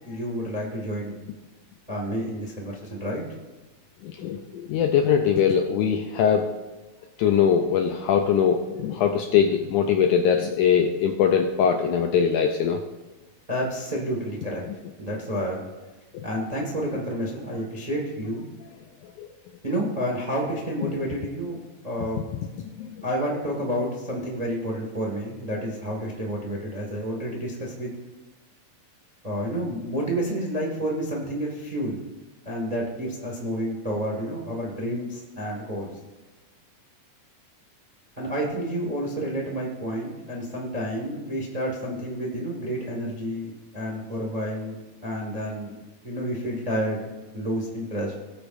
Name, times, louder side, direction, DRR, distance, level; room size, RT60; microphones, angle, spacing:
voice 1, 0.0-1.2 1.9-3.2 13.5-14.6 15.0-15.6 16.2-18.5 19.6-21.6 21.8-22.3 23.0-27.9 29.2-32.0 32.4-35.9 38.2-44.8 45.0-45.7 46.0-48.1, equal, 35° right, -1 dB, 0.6 m, -30 dB
voice 2, 4.0-6.5 7.2-12.8 14.7-14.8 19.2-19.3 20.8-20.9 22.8-22.9, left 7 dB, 80° left, 4 dB, 1.8 m, -22 dB
19.0 x 8.3 x 2.6 m, 1.2 s
omnidirectional pair, 4.1 m